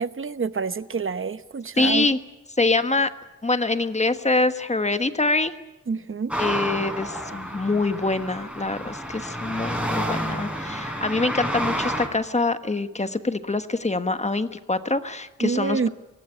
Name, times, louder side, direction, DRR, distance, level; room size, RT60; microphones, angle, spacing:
voice 1, 0.0-2.1 5.9-6.3 15.4-15.9, right 5 dB, 45° right, 13 dB, 1.0 m, -27 dB
voice 2, 1.8-2.2 2.6-3.1 3.4-5.5 6.4-15.8, left 3 dB, 25° left, 10 dB, 1.4 m, -24 dB
sound 1, 6.3-12.1, equal, 5° right, 4.4 m, -29 dB
24.0 x 17.5 x 9.9 m, 1.0 s
wide cardioid pair, 90°, 29 cm